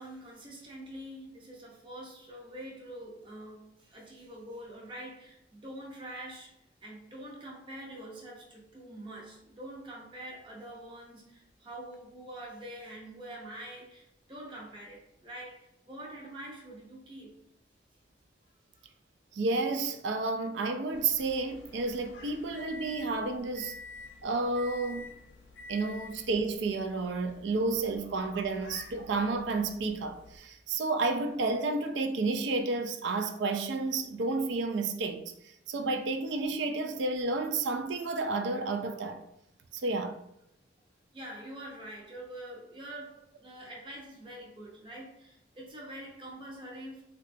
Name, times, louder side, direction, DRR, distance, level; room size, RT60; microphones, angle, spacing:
voice 1, 0.0-6.5 6.8-17.4 24.1-24.2 41.1-47.0, right 1 dB, 25° right, 0.6 m, -45 dB
voice 2, 19.3-23.8 24.2-25.0 25.7-39.2 39.7-40.2, right 3 dB, 75° right, 0.3 m, -31 dB
sound 1, 20.9-30.4, left 3 dB, 75° left, 0.6 m, -50 dB
3.7 x 2.3 x 2.5 m
head